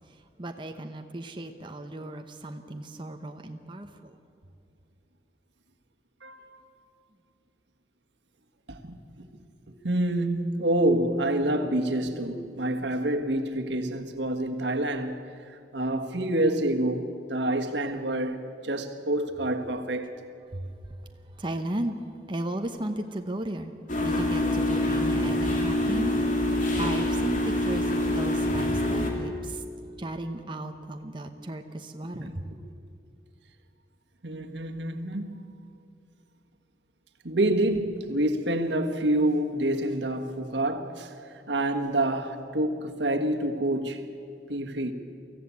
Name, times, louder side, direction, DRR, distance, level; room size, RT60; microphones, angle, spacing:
voice 1, 0.1-4.2 20.5-20.7 21.4-22.0 22.3-23.7 24.0-29.6 30.0-32.4, right 1 dB, 25° right, 0.9 m, -35 dB
voice 2, 6.2-6.7 8.7-9.0 9.8-15.2 15.5-20.1 32.1-32.3 34.2-35.5 37.2-41.1 41.5-44.1 44.5-44.9, right 1 dB, 75° right, 1.6 m, -27 dB
sound 1, 23.9-29.1, left 1 dB, 45° left, 2.9 m, -25 dB
24.0 x 15.0 x 8.4 m
head